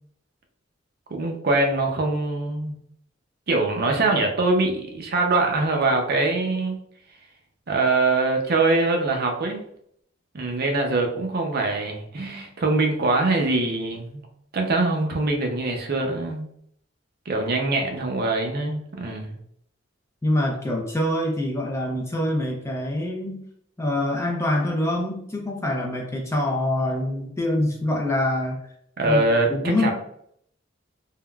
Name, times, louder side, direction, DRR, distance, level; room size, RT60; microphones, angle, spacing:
voice 1, 1.1-2.7 3.5-6.8 7.7-9.6 10.3-14.3 14.5-16.5 17.3-19.4 29.0-29.5 29.8-29.9, right 2 dB, 50° right, 2 dB, 0.5 m, -23 dB
voice 2, 20.2-23.4 23.8-28.6 29.0-29.9, left 1 dB, 15° left, -1 dB, 0.4 m, -25 dB
3.5 x 2.1 x 2.2 m, 0.69 s
head